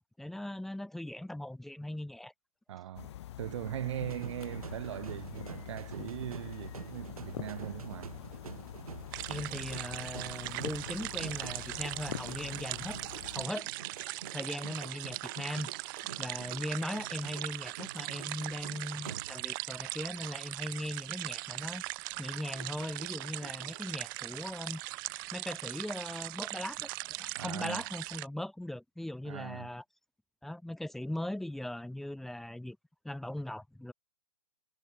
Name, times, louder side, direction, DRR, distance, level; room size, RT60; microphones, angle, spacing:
voice 1, 0.2-2.3 9.3-13.0 13.3-13.7 14.3-15.7 16.2-21.8 22.2-24.8 25.3-29.8 30.4-32.8 33.0-33.9, left 1 dB, ahead, 0.6 m, -39 dB
voice 2, 2.7-8.2 27.4-27.8 29.2-29.7, right 12 dB, 50° right, 2.2 m, -40 dB
sound 1, 3.0-13.5, left 12 dB, 45° left, 1.1 m, -45 dB
sound 2, 4.1-19.7 20.0-20.3 22.6-23.9, right 7 dB, 65° right, 5.7 m, -48 dB
sound 3, 9.1-28.3, right 24 dB, 35° right, 1.7 m, -40 dB
figure-of-eight pair, 130°, 20 cm